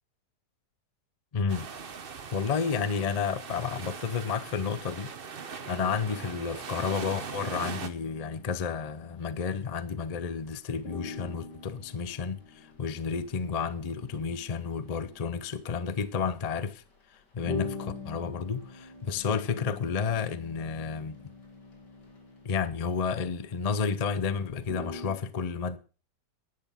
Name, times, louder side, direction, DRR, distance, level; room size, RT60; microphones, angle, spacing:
voice 1, 1.3-1.7 2.3-5.1 5.7-16.8 17.3-21.3 22.4-25.8, left 6 dB, 50° left, 0.4 m, -31 dB
sound 1, 1.5-7.9, right 6 dB, 40° right, 1.0 m, -40 dB
sound 2, 8.0-10.2 10.5-10.6 10.8-24.1 24.4-25.2, left 4 dB, 75° left, 2.9 m, -44 dB
10.5 x 9.6 x 5.7 m
omnidirectional pair, 1.9 m